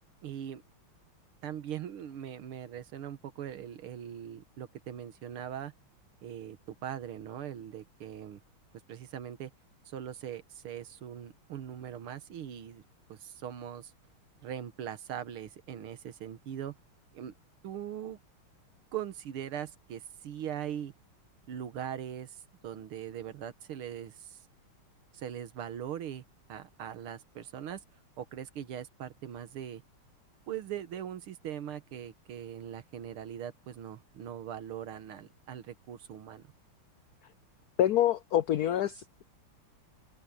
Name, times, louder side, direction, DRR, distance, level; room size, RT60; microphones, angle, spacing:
voice 1, 0.2-0.6 1.4-5.7 6.2-8.4 8.9-9.5 9.9-12.8 13.1-13.9 14.4-16.8 17.1-17.3 17.6-18.2 18.9-20.9 21.5-24.4 25.1-26.2 26.5-27.8 28.2-29.8 30.5-36.4, right 10 dB, 85° right, 2.1 m, -41 dB
voice 2, 37.8-39.2, left 11 dB, 75° left, 0.8 m, -26 dB
open air
omnidirectional pair, 2.3 m